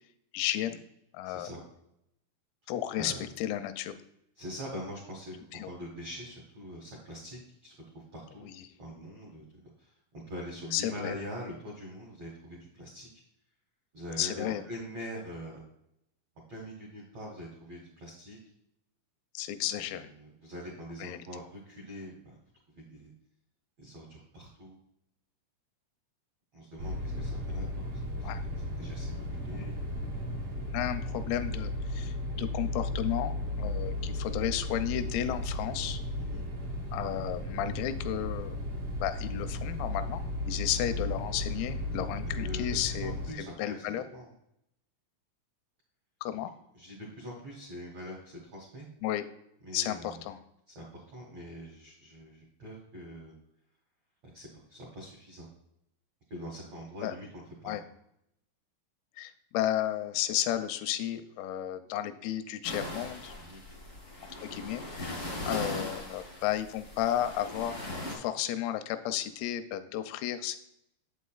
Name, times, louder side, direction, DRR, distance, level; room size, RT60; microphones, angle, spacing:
voice 1, 0.3-0.8 1.1-1.5 2.7-3.9 5.5-5.7 8.4-8.7 10.7-11.1 14.2-14.6 19.3-20.1 21.0-21.2 28.2-28.4 29.5-29.7 30.7-36.0 36.9-38.6 39.0-40.2 40.5-44.0 46.2-46.5 49.0-49.2 49.7-50.4 57.0-57.1 57.6-57.8 59.2-63.3 64.4-67.8 68.1-70.6, left 12 dB, 85° left, 9 dB, 3.2 m, -33 dB
voice 2, 1.2-1.6 3.0-3.2 4.3-8.5 8.8-9.4 9.8-13.1 13.9-15.6 16.5-18.4 19.8-22.4 22.7-23.1 23.8-24.8 26.5-27.8 28.2-28.3 28.8-29.7 33.6-33.7 36.1-36.4 42.2-43.8 44.1-44.3 46.7-48.9 49.6-50.2 50.7-53.3 54.3-55.5 56.3-57.3 57.6-57.8 63.4-63.6, equal, 85° right, -4 dB, 1.5 m, -43 dB
sound 1, 26.8-43.3, left 1 dB, 70° right, 1.4 m, -35 dB
sound 2, 62.6-68.2, left 1 dB, 70° left, 0.7 m, -39 dB
8.2 x 8.1 x 2.3 m, 0.77 s
omnidirectional pair, 6.0 m